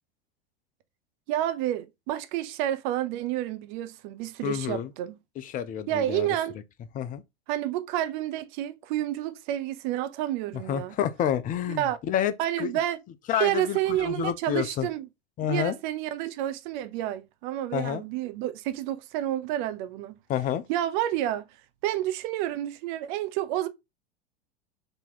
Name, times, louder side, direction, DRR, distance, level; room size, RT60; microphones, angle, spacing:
voice 1, 1.3-5.2 5.9-6.6 7.5-11.0 11.7-12.0 12.4-13.0 13.3-15.1 15.5-20.2 20.7-21.5 21.8-23.7, right 13 dB, 50° right, 0.7 m, -29 dB
voice 2, 4.4-4.9 5.4-6.3 6.9-7.2 10.7-12.7 13.3-14.9 15.4-15.7 17.7-18.0 20.3-20.6, left 10 dB, 25° left, 0.5 m, -29 dB
4.0 x 2.9 x 3.8 m
figure-of-eight pair, 90°, 33 cm